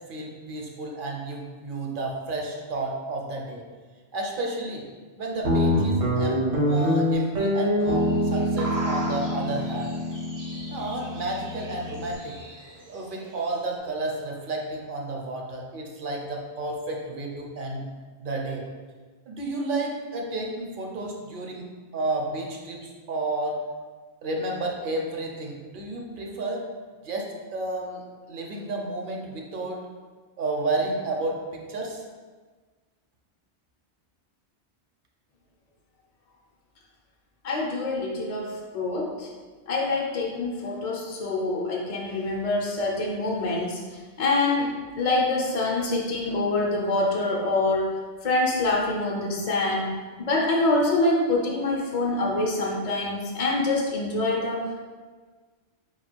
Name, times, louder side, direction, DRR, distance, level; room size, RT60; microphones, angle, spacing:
voice 1, 0.1-3.6 4.1-4.9 5.2-10.0 10.7-12.4 12.9-17.8 18.2-18.7 19.3-21.7 21.9-23.6 24.2-26.6 27.0-29.8 30.4-32.0, right 2 dB, 55° right, 0 dB, 0.7 m, -31 dB
Guitar, 5.4-12.1, equal, 80° right, 1.4 m, -25 dB
sound 1, 7.8-13.8, right 1 dB, 30° right, 0.3 m, -40 dB
voice 2, 37.4-39.3 39.7-44.7 45.0-47.9 48.2-54.7, left 2 dB, 45° left, -2 dB, 0.6 m, -25 dB
4.0 x 2.3 x 4.4 m, 1.4 s
omnidirectional pair, 1.2 m